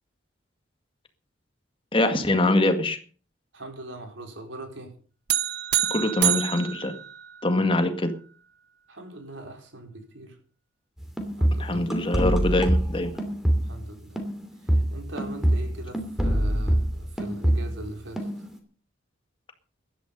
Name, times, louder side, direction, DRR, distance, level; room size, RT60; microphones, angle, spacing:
voice 1, 1.9-3.0 5.9-6.9 7.4-8.1 11.6-13.1, left 2 dB, 30° left, 7 dB, 1.9 m, -23 dB
voice 2, 3.5-5.0 7.5-7.8 8.9-10.4 11.3-11.9 13.5-14.2 14.6-18.5, right 1 dB, 80° right, 4 dB, 4.3 m, -41 dB
sound 1, 5.3-7.8, right 12 dB, 55° right, 1.1 m, -27 dB
sound 2, 11.0-13.9 14.2-17.9 18.2-18.6, equal, ahead, 2.8 m, -25 dB
15.5 x 11.5 x 5.4 m, 0.41 s
head